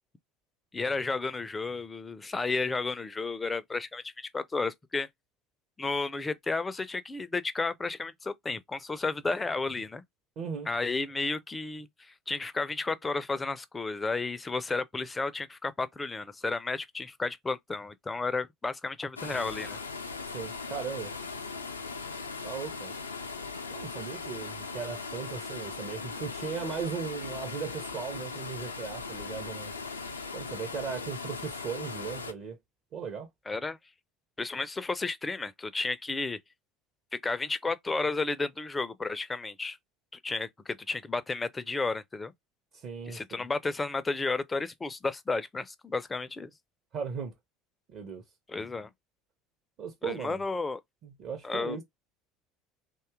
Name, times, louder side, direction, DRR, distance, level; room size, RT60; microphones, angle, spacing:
voice 1, 0.7-5.1 5.8-10.0 10.7-19.8 33.5-33.8 34.4-36.4 37.2-39.8 40.1-42.3 43.1-46.5 48.5-48.9 50.0-50.8 51.4-51.8, left 3 dB, 15° left, 0.4 m, -32 dB
voice 2, 10.4-10.7 20.3-21.1 22.4-22.9 23.7-29.8 30.3-32.6 32.9-33.3 42.7-43.5 46.9-47.3 47.9-48.2 49.8-50.4 51.0-51.8, right 6 dB, 45° right, 0.7 m, -37 dB
sound 1, 19.2-32.3, left 4 dB, 80° left, 0.4 m, -39 dB
2.6 x 2.3 x 3.4 m
figure-of-eight pair, 65°, 0 cm